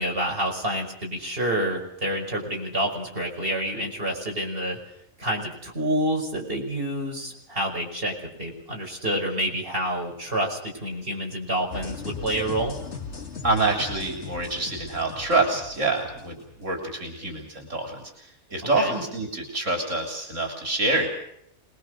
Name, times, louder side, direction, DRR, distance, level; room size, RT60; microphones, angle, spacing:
voice 1, 0.0-4.8 5.2-12.7 18.7-18.9, right 1 dB, 50° right, 0 dB, 5.9 m, -28 dB
sound 1, 11.7-16.6, left 5 dB, 65° left, 2.5 m, -38 dB
voice 2, 13.4-21.1, right 2 dB, 85° right, 2 dB, 3.9 m, -26 dB
26.5 x 21.0 x 6.4 m, 0.73 s
omnidirectional pair, 1.3 m